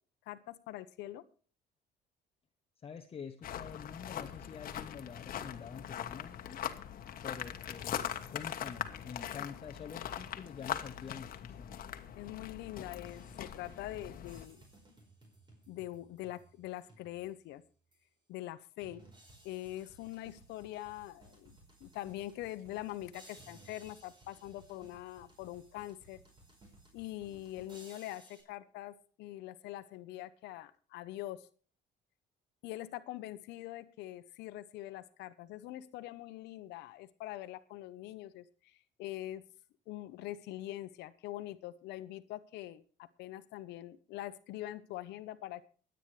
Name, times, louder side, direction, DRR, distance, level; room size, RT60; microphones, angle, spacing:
voice 1, 0.3-1.2 12.2-14.6 15.7-17.6 18.3-19.0 19.4-26.2 26.9-31.5 32.6-39.4 39.9-45.7, left 15 dB, 85° left, 13 dB, 0.9 m, -44 dB
voice 2, 2.8-6.6 7.2-11.8, left 7 dB, 35° left, 6 dB, 0.9 m, -47 dB
sound 1, 3.4-14.5, left 10 dB, 55° left, 1.3 m, -41 dB
sound 2, 13.1-17.5 17.9-18.0 18.8-28.4, right 2 dB, 25° right, 5.1 m, -59 dB
24.5 x 9.1 x 3.3 m, 0.40 s
cardioid pair, 110°, 17 cm